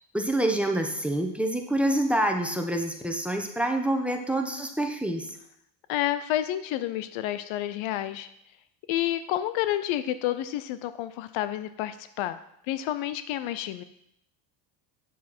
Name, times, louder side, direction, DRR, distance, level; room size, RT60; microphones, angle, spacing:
voice 1, 0.1-5.3, right 1 dB, ahead, 3 dB, 1.2 m, -27 dB
voice 2, 5.9-8.3 8.9-12.4 12.7-13.8, left 13 dB, 70° left, 13 dB, 0.7 m, -29 dB
8.2 x 7.2 x 4.4 m, 0.75 s
supercardioid pair, 85°, 49 cm